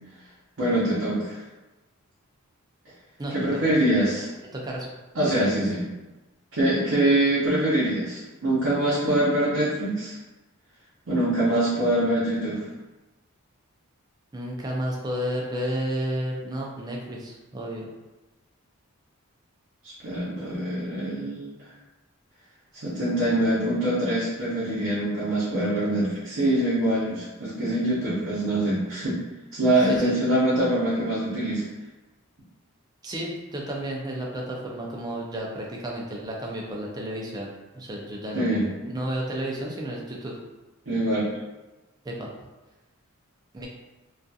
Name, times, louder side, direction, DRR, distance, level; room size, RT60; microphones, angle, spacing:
voice 1, 0.6-1.4 3.3-4.3 5.1-5.8 6.5-10.2 11.1-12.6 19.8-21.7 22.7-29.2 29.5-31.6 38.3-38.7 40.9-41.3, right 1 dB, 60° right, -10 dB, 0.7 m, -24 dB
voice 2, 4.5-4.9 14.3-17.9 29.9-30.1 33.0-37.5 37.7-38.6 38.8-40.4 42.0-42.3 43.5-43.7, right 1 dB, 20° right, -2 dB, 0.3 m, -32 dB
2.6 x 2.4 x 2.3 m, 1.1 s
head